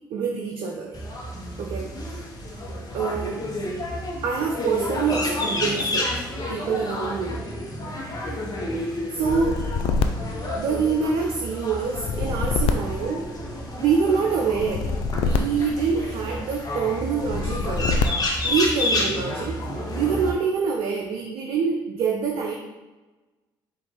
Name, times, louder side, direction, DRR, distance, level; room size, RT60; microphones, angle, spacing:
voice 1, 0.1-1.0 1.6-1.9 2.9-3.5 4.2-6.1 6.5-7.4 9.1-9.6 10.5-13.2 13.8-14.9 15.1-18.0 18.4-19.6 19.9-22.5, right 5 dB, 60° right, 1 dB, 0.5 m, -25 dB
sound 1, 0.9-20.3, left 1 dB, 35° left, 1.1 m, -30 dB
sound 2, 9.2-11.2 11.8-13.8 14.5-16.4 17.2-18.5, left 4 dB, 60° left, 0.4 m, -26 dB
4.7 x 2.6 x 3.7 m, 1.2 s
hypercardioid pair, 55°, 11 cm